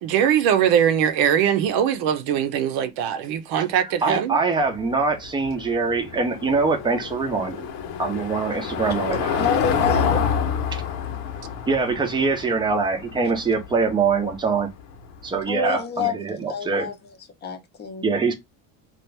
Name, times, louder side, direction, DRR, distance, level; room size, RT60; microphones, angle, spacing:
voice 1, 0.0-4.4, right 9 dB, 60° right, 0.7 m, -21 dB
voice 2, 4.0-7.7 8.0-9.4 10.7-10.8 11.7-14.7 15.2-16.9 18.0-18.3, right 4 dB, 10° right, 0.6 m, -23 dB
Car passing by / Engine, 4.6-15.3, left 6 dB, 75° left, 1.1 m, -28 dB
voice 3, 9.4-10.2 15.5-16.2 16.5-16.9 17.4-18.1, left 6 dB, 25° left, 0.7 m, -27 dB
2.9 x 2.4 x 3.2 m
cardioid pair, 160°, 41 cm